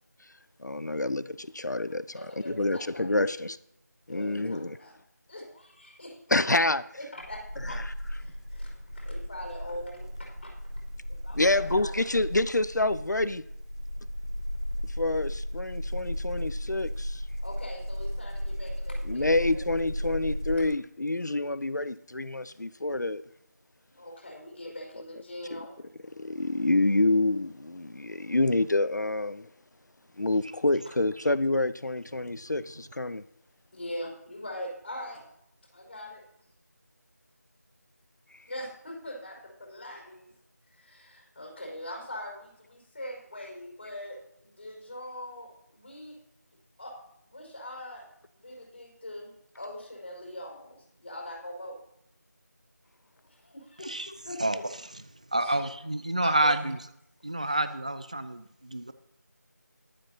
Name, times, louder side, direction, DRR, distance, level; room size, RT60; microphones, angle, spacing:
voice 1, 0.6-3.6 4.1-4.8 6.3-6.8 7.6-7.9 11.3-13.4 14.8-17.2 19.1-23.2 25.5-25.6 26.2-29.5 30.2-33.2, left 2 dB, 80° left, 0.7 m, -27 dB
voice 2, 2.1-3.4 4.0-4.9 5.3-6.4 7.0-7.8 8.1-10.5 11.1-11.9 17.4-19.6 20.0-20.3 23.9-25.7 33.7-35.2 35.7-36.2 38.5-40.3 40.7-46.2 46.8-46.9 47.3-48.0 48.3-51.8 53.4-54.7 55.4-55.6 56.2-56.5 57.4-57.6, left 1 dB, 40° left, 5.3 m, -42 dB
sound 1, 7.2-20.7, equal, 15° left, 0.7 m, -35 dB
voice 3, 55.3-56.8 57.2-58.9, right 1 dB, 25° right, 0.5 m, -28 dB
22.5 x 7.6 x 2.8 m
figure-of-eight pair, 170°, 9 cm